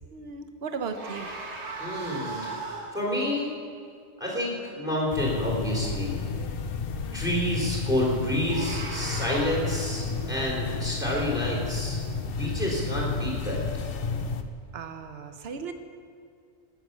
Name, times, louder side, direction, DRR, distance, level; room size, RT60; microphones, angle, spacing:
voice 1, 0.1-1.3 2.3-2.9 14.7-15.7, right 5 dB, 65° right, 7 dB, 1.2 m, -37 dB
sound 1, 0.8-3.1 8.2-9.5, right 3 dB, 85° right, 1.9 m, -37 dB
voice 2, 1.8-2.5 2.9-3.5 4.2-6.2 7.1-12.0 12.2-13.6, left 1 dB, 5° right, -4 dB, 3.6 m, -29 dB
sound 2, 5.1-14.4, left 4 dB, 60° left, 0.9 m, -31 dB
19.5 x 7.7 x 6.7 m, 2.2 s
omnidirectional pair, 1.1 m